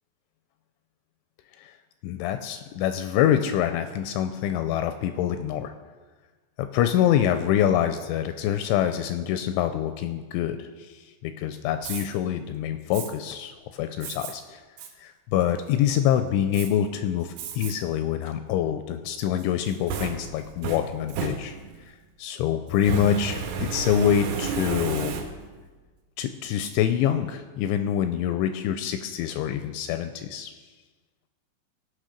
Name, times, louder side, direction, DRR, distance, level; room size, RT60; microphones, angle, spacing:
voice 1, 2.0-5.7 6.6-14.6 15.0-21.6 21.9-25.2 26.2-30.5, left 10 dB, 85° left, 9 dB, 2.7 m, -26 dB
Fire, 11.8-12.1 12.9-13.1 14.0-14.3 14.8-14.9 15.4-15.9 16.5-16.7 17.4-17.7 18.2-18.3 19.4-21.9 22.7-25.6, right 5 dB, 80° right, 3.4 m, -32 dB
17.5 x 6.1 x 5.1 m, 1.3 s
omnidirectional pair, 5.7 m